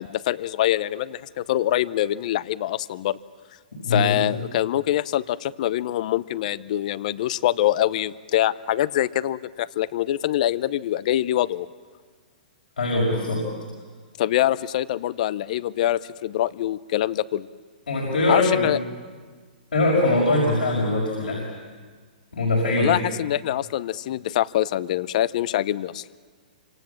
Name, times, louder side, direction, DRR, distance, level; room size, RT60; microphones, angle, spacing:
voice 1, 0.0-3.2 3.9-11.7 14.2-17.5 18.3-18.8 22.8-26.0, left 13 dB, 55° left, 18 dB, 0.7 m, -24 dB
voice 2, 3.7-4.3 12.8-13.5 17.9-18.7 19.7-21.5 22.3-23.0, left 2 dB, 85° left, -2 dB, 5.9 m, -22 dB
27.0 x 26.0 x 7.3 m, 1.5 s
hypercardioid pair, 125°, 5 cm